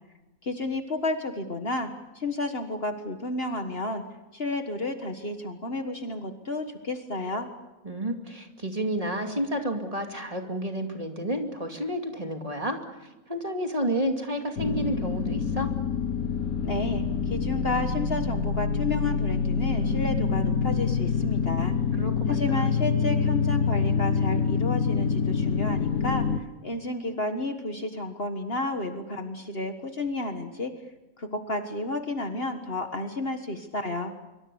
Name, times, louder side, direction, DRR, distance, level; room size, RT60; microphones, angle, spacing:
voice 1, 0.4-1.9 2.1-4.0 4.3-7.5 16.6-21.7 22.3-30.7 31.2-34.1, left 2 dB, 45° left, 6 dB, 1.7 m, -31 dB
voice 2, 7.8-15.7 21.9-22.6, equal, 25° right, 3 dB, 2.5 m, -31 dB
sound 1, 14.6-26.4, left 5 dB, 85° left, 1.7 m, -26 dB
25.0 x 24.0 x 7.0 m, 1.0 s
omnidirectional pair, 1.5 m